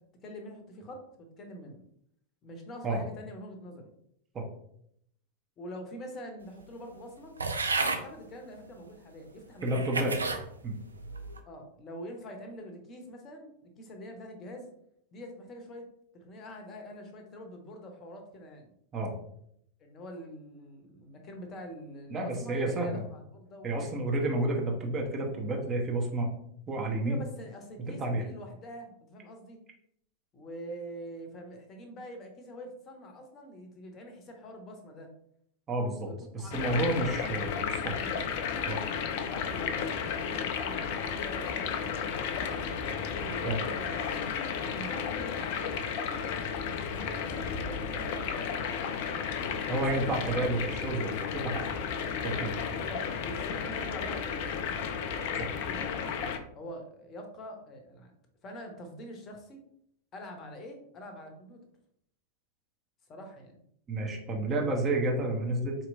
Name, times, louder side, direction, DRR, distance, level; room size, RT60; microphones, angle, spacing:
voice 1, 0.2-1.8 2.4-3.9 5.6-7.4 7.8-9.8 11.4-14.7 15.1-15.9 16.1-18.7 19.8-23.7 27.0-29.6 30.3-35.1 36.0-37.2 37.5-38.2 39.0-42.8 43.2-44.0 44.6-45.7 46.7-48.6 49.1-50.4 52.7-54.6 55.3-56.0 56.5-58.1 58.4-59.6 60.1-61.6 63.1-63.6, equal, 30° left, 4 dB, 0.8 m, -45 dB
sound 1, 7.4-8.0 8.8-8.9 9.6-10.4 11.0-11.4, right 3 dB, 75° right, 0.4 m, -31 dB
voice 2, 9.6-10.1 10.6-10.7 18.9-19.1 22.1-23.0 23.6-26.3 26.7-27.2 28.0-28.2 35.7-37.5 37.8-37.9 38.7-38.8 43.4-43.6 49.7-51.7 52.2-52.5 55.4-55.5 63.9-65.8, right 2 dB, 25° right, 0 dB, 0.9 m, -30 dB
sound 2, 36.5-56.4, left 6 dB, 50° left, 0.4 m, -33 dB
4.3 x 2.9 x 2.6 m, 0.72 s
figure-of-eight pair, 90°, 0 cm